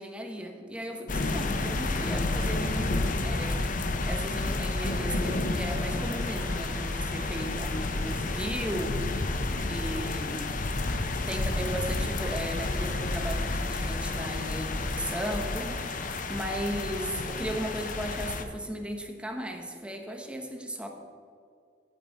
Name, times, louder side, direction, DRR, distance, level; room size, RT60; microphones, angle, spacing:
voice 1, 0.0-9.4 9.7-10.5 11.3-20.9, equal, 5° right, 3 dB, 1.0 m, -36 dB
sound 1, 1.1-18.4, left 2 dB, 50° left, 0.7 m, -30 dB
sound 2, 5.4-9.5, right 1 dB, 55° right, 2.7 m, -49 dB
9.4 x 8.8 x 4.2 m, 2.3 s
head